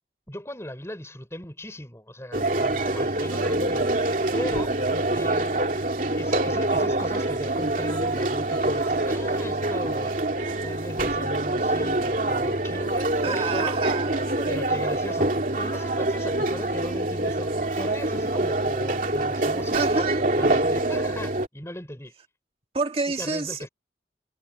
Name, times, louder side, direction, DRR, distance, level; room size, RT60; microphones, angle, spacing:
voice 1, 0.3-4.7 5.1-5.8 6.1-10.1 10.6-13.8 14.5-22.1 23.2-23.7, left 1 dB, 15° left, 5.9 m, -38 dB
sound 1, 2.3-21.5, right 2 dB, 50° right, 2.8 m, -25 dB
voice 2, 13.2-14.8 19.7-20.2 22.7-23.7, right 4 dB, 35° right, 1.9 m, -29 dB
head